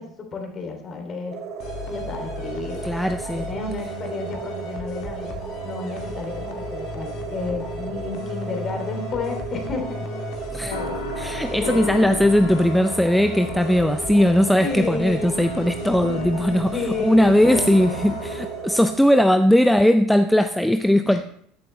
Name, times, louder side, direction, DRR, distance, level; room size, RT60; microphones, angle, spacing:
voice 1, 0.0-1.3 1.9-3.0 3.4-5.4 5.6-10.0 10.6-10.9 11.6-11.8 14.6-15.4 16.7-17.9 21.0-21.2, left 4 dB, 30° left, 4 dB, 2.8 m, -31 dB
sound 1, 1.3-19.0, right 6 dB, 45° right, 2.7 m, -35 dB
sound 2, 1.6-19.0, left 4 dB, 50° left, 2.2 m, -37 dB
voice 2, 2.8-3.5 10.5-10.8 11.2-21.2, equal, ahead, 9 dB, 0.5 m, -19 dB
sound 3, 10.6-19.1, left 4 dB, 75° left, 1.7 m, -35 dB
13.5 x 11.5 x 3.2 m, 0.64 s
figure-of-eight pair, 70°, 0 cm